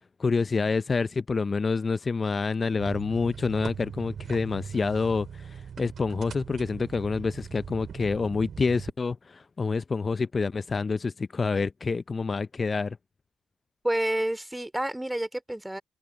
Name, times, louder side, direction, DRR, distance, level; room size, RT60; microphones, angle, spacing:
voice 1, 0.2-13.0, left 4 dB, 40° left, 0.6 m, -27 dB
sound 1, 2.8-8.9, right 7 dB, 60° right, 2.8 m, -40 dB
voice 2, 13.8-15.8, right 1 dB, 10° right, 3.0 m, -29 dB
open air
hypercardioid pair, 45°, 0 cm